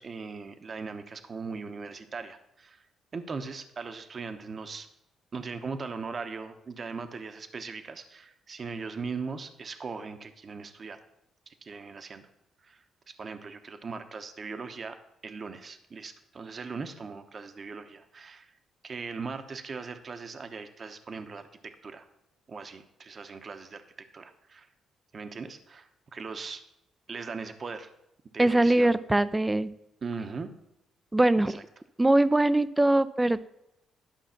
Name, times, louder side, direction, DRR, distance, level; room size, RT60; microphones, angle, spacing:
voice 1, 0.0-2.9 3.1-4.9 5.3-11.0 11.5-12.3 12.6-18.5 18.8-22.1 22.5-24.7 25.1-26.6 27.1-27.9 28.3-29.0 30.0-30.5 31.4-31.6, right 4 dB, 40° right, 8 dB, 0.9 m, -39 dB
voice 2, 28.4-29.7 31.1-31.6 32.0-33.5, right 1 dB, 15° right, 15 dB, 0.5 m, -22 dB
12.0 x 5.7 x 5.8 m, 0.84 s
cardioid pair, 90°, 0 cm